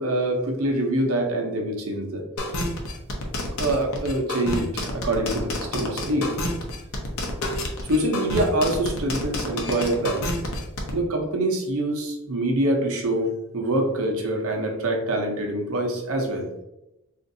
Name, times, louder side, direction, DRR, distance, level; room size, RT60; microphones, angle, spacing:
voice 1, 0.0-2.2 3.6-6.3 7.8-10.3 10.9-13.3 13.5-16.5, right 1 dB, 80° right, 2 dB, 0.7 m, -25 dB
sound 1, 2.4-10.9, left 1 dB, 80° left, 0.7 m, -28 dB
3.7 x 2.5 x 2.6 m, 0.92 s
head